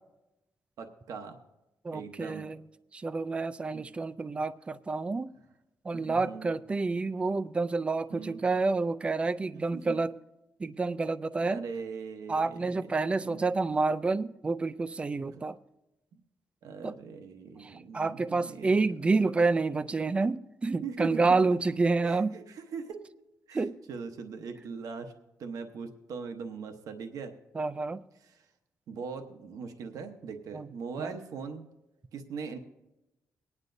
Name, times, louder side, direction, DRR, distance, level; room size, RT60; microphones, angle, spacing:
voice 1, 0.8-1.3 1.9-2.5 3.7-3.9 5.9-6.5 8.1-8.4 9.5-9.8 11.4-12.9 13.2-13.4 15.3-15.4 16.6-18.8 20.8-21.3 22.0-23.0 23.5-25.1 25.4-27.3 28.3-28.4 28.9-31.6 32.1-32.6, right 5 dB, 75° right, 5 dB, 1.0 m, -40 dB
voice 2, 1.8-2.6 2.9-5.3 5.8-10.1 10.6-11.6 12.3-15.6 16.8-17.0 17.6-22.4 23.5-23.7 27.5-28.0 30.5-30.7 31.0-31.2, right 3 dB, 20° right, 15 dB, 0.3 m, -29 dB
23.5 x 9.7 x 2.6 m, 0.99 s
wide cardioid pair, 155°, 6 cm